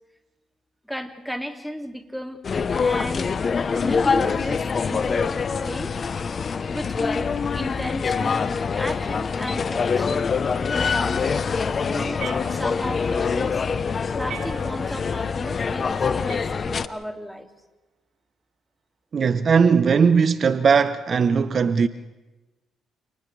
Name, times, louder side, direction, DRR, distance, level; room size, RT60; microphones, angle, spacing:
voice 1, 0.8-2.4 2.7-3.3 3.7-5.9 6.7-10.3 10.7-13.6 14.2-17.5, equal, ahead, 2.6 m, -34 dB
sound 1, 2.4-16.9, left 5 dB, 45° left, 1.0 m, -25 dB
sound 2, 12.2-13.1 14.3-15.1 16.3-17.1, right 7 dB, 75° right, 2.6 m, -40 dB
voice 2, 19.1-21.9, right 6 dB, 45° right, 1.0 m, -18 dB
29.5 x 29.0 x 3.4 m
cardioid pair, 90°, 0 cm